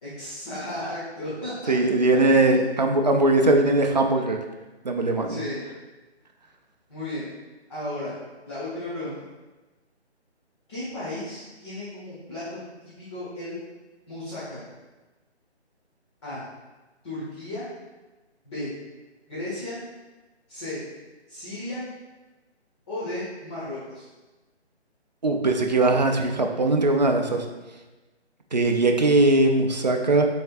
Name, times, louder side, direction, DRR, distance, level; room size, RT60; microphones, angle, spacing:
voice 1, 0.0-1.7 2.1-2.6 5.3-5.6 6.9-7.3 7.7-8.1 8.5-9.1 10.7-13.6 14.1-14.6 16.2-16.4 17.0-17.7 18.4-18.7 19.3-19.8 20.5-20.8 21.3-21.9 22.9-24.0, left 1 dB, 25° left, -13 dB, 1.2 m, -34 dB
voice 2, 1.7-4.4 4.8-5.4 25.2-27.4 28.5-30.3, right 2 dB, 40° right, 3 dB, 0.4 m, -20 dB
6.2 x 3.5 x 2.4 m, 1.2 s
figure-of-eight pair, 155°, 34 cm